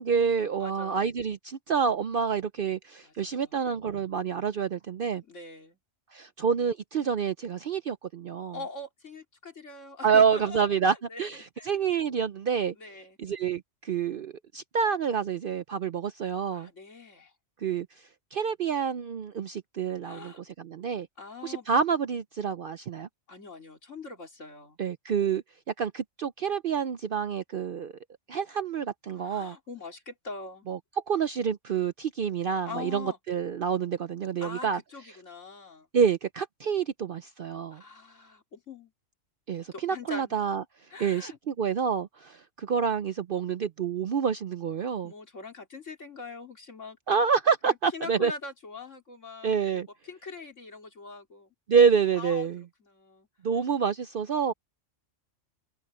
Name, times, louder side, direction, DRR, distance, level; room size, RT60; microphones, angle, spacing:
voice 1, 0.0-5.2 6.1-8.6 10.0-12.7 13.2-16.7 17.6-17.9 18.3-20.3 20.6-21.1 21.4-23.1 24.8-25.4 25.8-27.9 28.3-29.5 30.7-30.8 31.1-34.8 35.9-37.8 39.5-40.6 41.0-45.1 47.1-48.3 49.4-49.9 51.7-52.6 53.4-54.5, right 6 dB, 55° right, 0.6 m, -27 dB
voice 2, 0.6-1.0 3.0-3.5 5.2-5.8 8.5-11.8 12.8-13.2 16.5-17.3 20.0-20.4 21.2-21.7 23.3-24.8 29.2-30.7 32.7-33.2 34.4-35.9 37.7-38.9 39.7-40.3 40.9-41.4 45.0-47.0 47.6-51.5 52.1-52.5 52.8-53.3, left 4 dB, 65° left, 3.6 m, -43 dB
omnidirectional pair, 1.4 m